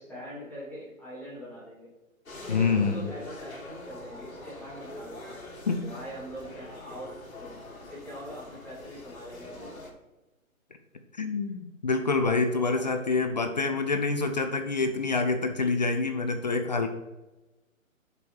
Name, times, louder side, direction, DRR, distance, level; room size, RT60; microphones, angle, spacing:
voice 1, 0.0-1.9 2.4-5.4 5.8-9.8 12.7-12.9, equal, 5° left, -8 dB, 2.5 m, -43 dB
sound 1, 2.3-9.9, left 2 dB, 80° left, 2.8 m, -44 dB
voice 2, 2.5-3.1 5.7-5.9 11.2-16.9, left 4 dB, 30° left, 7 dB, 0.5 m, -26 dB
6.8 x 5.2 x 4.7 m, 1.0 s
hypercardioid pair, 145°, 42 cm